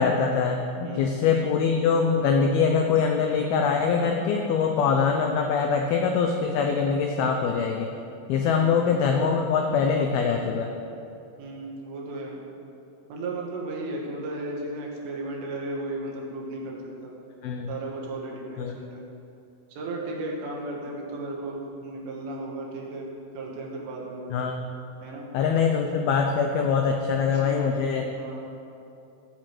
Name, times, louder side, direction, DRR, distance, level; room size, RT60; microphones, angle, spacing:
voice 1, 0.0-7.9 8.3-10.7 17.4-17.7 18.6-18.8 24.3-24.7 25.3-28.1, left 5 dB, 85° left, 3 dB, 2.1 m, -23 dB
voice 2, 0.8-1.2 8.4-8.8 11.4-12.5 13.1-17.1 17.7-19.0 19.7-23.1 23.3-24.3 25.0-25.7 27.3-27.6 28.2-28.4, right 2 dB, 80° right, -2 dB, 4.8 m, -35 dB
17.0 x 9.3 x 7.7 m, 2.7 s
omnidirectional pair, 5.6 m